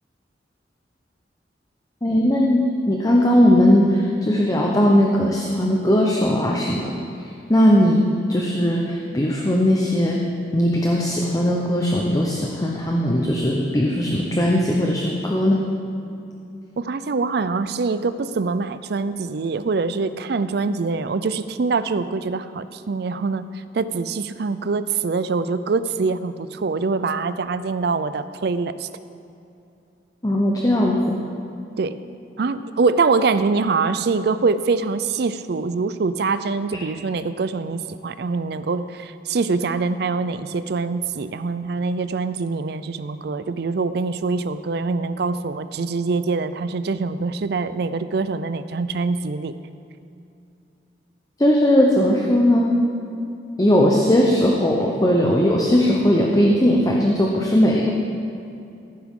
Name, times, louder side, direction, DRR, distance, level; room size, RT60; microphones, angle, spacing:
voice 1, 2.0-6.9 7.5-8.0 8.3-10.2 10.5-15.6 30.2-31.2 51.4-52.7 53.6-57.9, equal, 20° left, -1 dB, 0.8 m, -18 dB
voice 2, 16.8-23.4 23.7-28.9 31.8-32.0 32.4-49.5, right 4 dB, 65° right, 13 dB, 0.5 m, -24 dB
15.5 x 9.6 x 3.7 m, 2.6 s
head